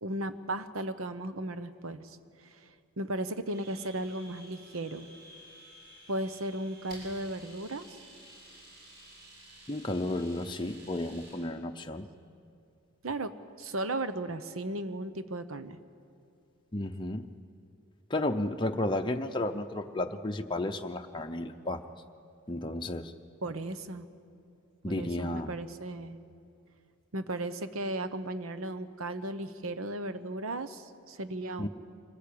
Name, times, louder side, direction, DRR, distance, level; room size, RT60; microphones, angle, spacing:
voice 1, 0.0-2.7 3.0-5.1 6.1-8.0 13.0-15.8 23.4-24.0 24.9-26.2 27.1-31.7, right 1 dB, 80° right, 11 dB, 1.0 m, -36 dB
Domestic sounds home sounds, 3.5-11.4, right 1 dB, 55° right, 7.9 m, -53 dB
voice 2, 9.7-12.1 16.7-17.3 18.1-21.8 22.5-23.1 24.8-25.5 31.6-31.7, left 1 dB, 25° left, 4 dB, 0.7 m, -33 dB
24.5 x 15.5 x 8.6 m, 2.4 s
head